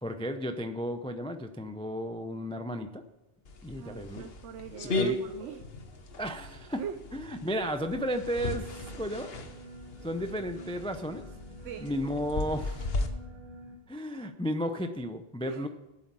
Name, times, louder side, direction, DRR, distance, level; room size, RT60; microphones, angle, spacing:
voice 1, 0.0-3.0 3.6-4.2 4.8-5.2 6.2-6.8 7.1-9.3 10.0-11.3 11.8-12.9 13.9-15.7, equal, 10° left, 8 dB, 0.4 m, -33 dB
sound 1, 3.4-13.1, left 2 dB, 60° left, 1.3 m, -37 dB
voice 2, 3.8-5.7 6.8-7.0 11.6-11.9 15.4-15.7, right 8 dB, 85° right, 9 dB, 1.0 m, -41 dB
sound 2, 7.9-13.8, right 1 dB, 25° right, 1.4 m, -48 dB
8.4 x 7.7 x 8.7 m, 0.98 s
omnidirectional pair, 1.2 m